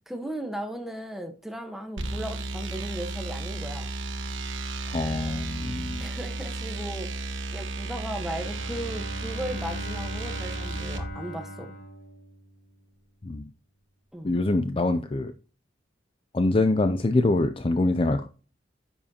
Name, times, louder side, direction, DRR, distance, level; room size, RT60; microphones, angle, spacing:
voice 1, 0.1-3.9 6.0-7.1 7.5-11.7 14.1-14.3, right 1 dB, ahead, 1.1 m, -36 dB
sound 1, 2.0-11.1, right 2 dB, 80° right, 1.5 m, -33 dB
voice 2, 4.9-6.0 13.2-13.5 14.2-15.3 16.3-18.3, left 2 dB, 30° left, 0.4 m, -24 dB
Bowed string instrument, 8.1-13.0, equal, 60° left, 2.3 m, -41 dB
10.0 x 7.2 x 2.8 m
head